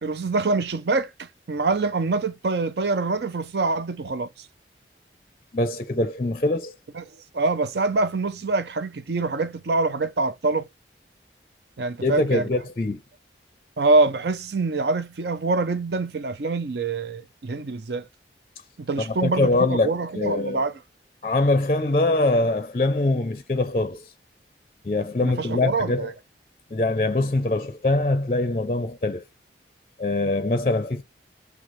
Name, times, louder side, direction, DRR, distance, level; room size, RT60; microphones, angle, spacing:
voice 1, 0.0-4.5 6.9-7.0 7.3-10.7 11.8-12.4 13.8-18.1 18.8-20.8 25.2-26.1, right 3 dB, 70° right, 0.6 m, -25 dB
voice 2, 5.5-6.8 12.0-13.0 19.1-20.6 21.2-24.1 24.8-26.1 26.7-29.2 30.0-31.0, left 2 dB, 35° left, 0.4 m, -23 dB
6.2 x 2.3 x 3.1 m
head